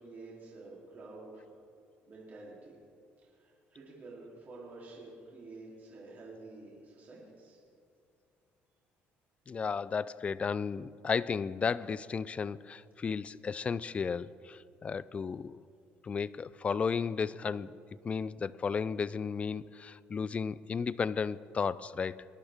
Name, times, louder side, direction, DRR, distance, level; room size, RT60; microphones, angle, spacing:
voice 1, 0.0-1.4 2.0-2.8 3.2-7.6, right 3 dB, 40° right, -5 dB, 3.3 m, -49 dB
voice 2, 9.5-15.6 16.0-17.7 18.0-22.2, left 5 dB, 30° left, 18 dB, 0.3 m, -34 dB
21.0 x 11.5 x 3.6 m, 2.4 s
cardioid pair, 110°, 4 cm